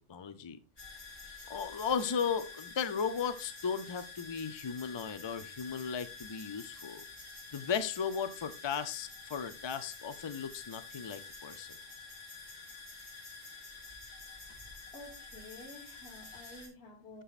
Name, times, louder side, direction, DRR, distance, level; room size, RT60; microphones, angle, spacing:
voice 1, 0.1-0.6 1.5-7.0 7.5-11.7, left 6 dB, 35° left, 0.5 m, -36 dB
sound 1, 0.8-16.7, left 4 dB, 50° left, 2.4 m, -49 dB
voice 2, 14.9-17.2, left 2 dB, 85° left, 1.6 m, -51 dB
10.0 x 6.2 x 2.4 m
omnidirectional pair, 1.0 m